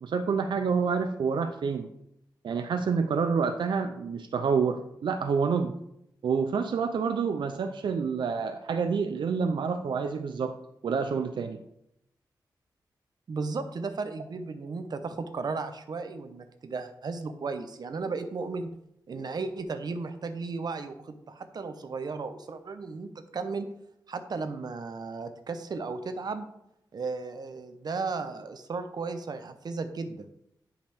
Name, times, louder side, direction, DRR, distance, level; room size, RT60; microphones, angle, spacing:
voice 1, 0.0-1.9 2.4-5.7 6.2-10.5 10.8-11.6, right 5 dB, 85° right, 7 dB, 0.5 m, -28 dB
voice 2, 13.3-18.7 19.1-23.7 24.1-26.5 26.9-30.3, right 4 dB, 60° right, 8 dB, 0.8 m, -35 dB
10.5 x 5.1 x 3.5 m, 0.80 s
wide cardioid pair, 110°, 8 cm